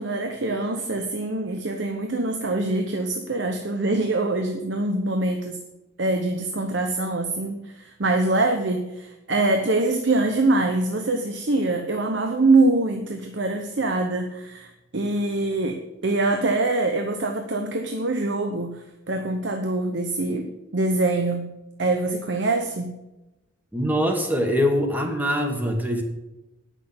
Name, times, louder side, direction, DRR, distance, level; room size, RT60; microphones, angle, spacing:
voice 1, 0.0-5.6 6.0-18.8 19.1-21.5 21.8-22.9, right 2 dB, 60° right, 4 dB, 0.9 m, -24 dB
voice 2, 23.7-26.0, equal, 10° right, 4 dB, 1.5 m, -23 dB
9.7 x 6.4 x 7.9 m, 0.97 s
head